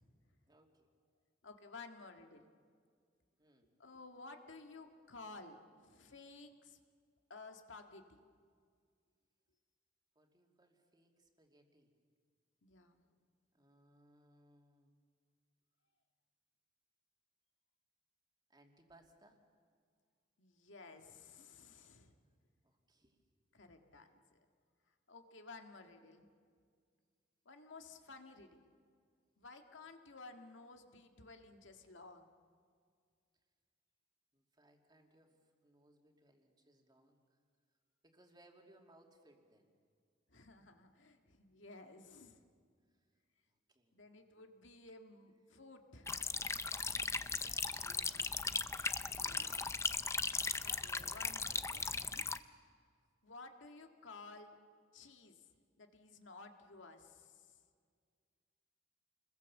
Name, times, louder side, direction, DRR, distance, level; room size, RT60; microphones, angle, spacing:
voice 1, 0.5-0.9 3.4-3.7 10.1-11.9 13.5-14.9 18.5-19.4 22.6-23.2 34.3-37.2 38.0-39.7 43.5-44.0 47.4-48.5 50.5-51.3, right 1 dB, 20° right, 2 dB, 2.7 m, -67 dB
voice 2, 1.4-2.5 3.8-6.8 7.3-8.2 12.6-13.0 20.4-22.2 23.5-24.2 25.1-26.3 27.5-28.7 29.4-32.3 40.3-42.5 43.9-46.3 49.1-49.7 50.6-52.3 53.2-54.6 54.9-57.6, left 3 dB, 80° left, 5 dB, 2.0 m, -55 dB
sound 1, 46.1-52.4, left 4 dB, 15° left, 0.6 m, -38 dB
29.0 x 21.5 x 7.3 m, 2.1 s
head